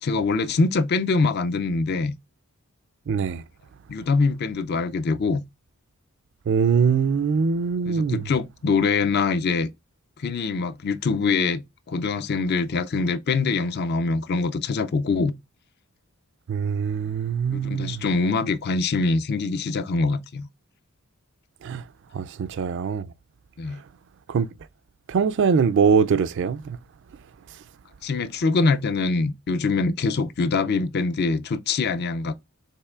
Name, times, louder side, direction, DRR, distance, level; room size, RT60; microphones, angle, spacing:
voice 1, 0.0-2.1 3.9-5.4 7.9-9.7 10.2-15.3 17.5-20.5 23.6-23.8 28.0-32.3, left 4 dB, 45° left, 0.4 m, -24 dB
voice 2, 3.1-3.4 6.5-8.2 16.5-18.0 21.6-21.8 22.1-23.1 24.3-24.5 25.1-26.8, right 6 dB, 55° right, 0.3 m, -22 dB
5.5 x 3.6 x 2.3 m
head